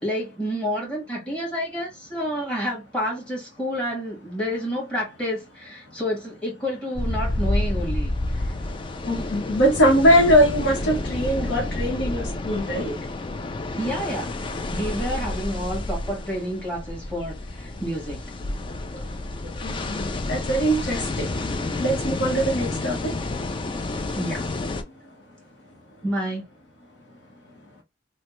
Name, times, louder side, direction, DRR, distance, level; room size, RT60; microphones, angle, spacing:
voice 1, 0.0-8.1 13.8-14.4 14.7-18.2 24.2-24.4 26.0-26.4, equal, 5° left, 1.6 m, -29 dB
sound 1, 7.0-24.8, left 2 dB, 25° left, 0.4 m, -29 dB
voice 2, 9.1-12.9 19.6-21.0 21.8-23.0, equal, 65° left, 0.9 m, -21 dB
3.2 x 2.1 x 3.0 m
head